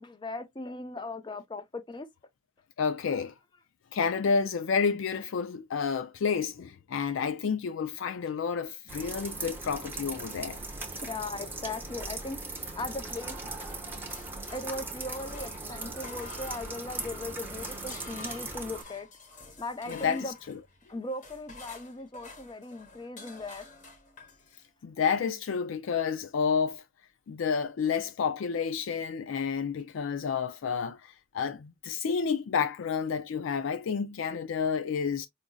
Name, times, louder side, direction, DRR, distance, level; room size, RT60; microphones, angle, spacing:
voice 1, 0.0-2.1 11.0-12.4 12.7-13.3 14.5-19.1 19.6-20.3 20.9-23.6, left 2 dB, 25° left, 0.6 m, -38 dB
voice 2, 2.8-3.3 3.9-10.6 19.9-20.6 24.8-26.8 27.3-35.3, left 6 dB, 70° left, 0.4 m, -30 dB
sound 1, 8.9-18.8, right 2 dB, 10° right, 0.8 m, -39 dB
sound 2, 13.6-14.9 15.3-24.7, left 3 dB, 40° left, 1.1 m, -49 dB
4.9 x 2.5 x 2.2 m
head